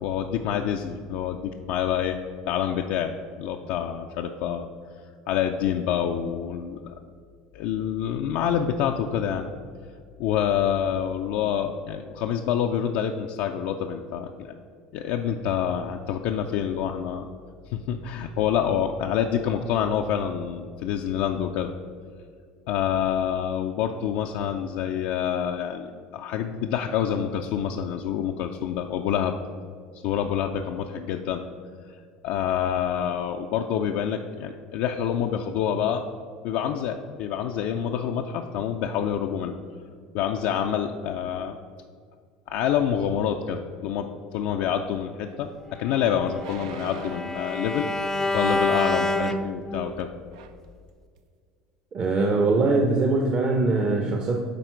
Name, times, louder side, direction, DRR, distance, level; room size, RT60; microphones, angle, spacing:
voice 1, 0.0-2.2 2.5-3.1 3.4-4.7 5.3-7.0 7.5-9.4 10.2-14.5 14.9-17.3 17.7-21.7 22.7-29.3 30.0-31.4 31.8-31.9 32.2-36.0 36.4-39.5 40.1-41.6 42.5-50.1, left 9 dB, 70° left, 3 dB, 0.4 m, -27 dB
sound 1, 45.3-45.4 46.3-47.4 48.4-48.9 49.9-50.0 50.3-50.6 51.2-51.3, right 6 dB, 85° right, 0.5 m, -43 dB
Bowed string instrument, 45.9-50.1, left 2 dB, 15° left, 0.4 m, -27 dB
voice 2, 51.9-54.4, right 3 dB, 35° right, 2 dB, 0.7 m, -22 dB
9.2 x 3.6 x 4.5 m, 2.1 s
supercardioid pair, 100°, 3 cm